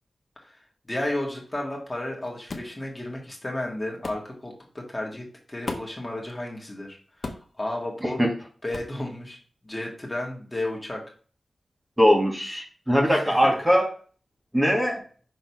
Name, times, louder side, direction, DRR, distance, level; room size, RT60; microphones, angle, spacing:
voice 1, 0.9-7.3 7.6-8.2 8.6-9.4 9.6-11.0 13.0-13.4, left 1 dB, 20° left, -1 dB, 1.7 m, -33 dB
sound 1, 2.5-2.8 4.0-4.3 5.7-6.0 7.2-7.5 8.7-9.0, left 3 dB, 55° left, 1.0 m, -35 dB
voice 2, 12.0-13.8 14.5-15.0, equal, 10° right, -1 dB, 1.6 m, -20 dB
5.8 x 3.8 x 4.7 m, 0.41 s
wide cardioid pair, 110°, 0 cm